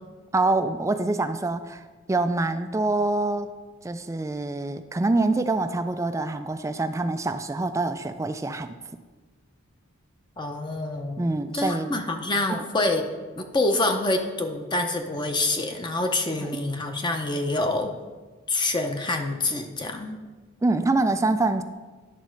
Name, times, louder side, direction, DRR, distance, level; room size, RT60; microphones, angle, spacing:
voice 1, 0.3-3.5 3.8-8.8 11.2-11.9 16.4-16.6 20.6-21.6, right 2 dB, 15° right, 10 dB, 0.3 m, -25 dB
voice 2, 10.4-11.2 11.5-13.0 13.4-17.9 18.5-20.2, left 2 dB, 20° left, 4 dB, 0.7 m, -26 dB
10.0 x 4.1 x 6.4 m, 1.3 s
head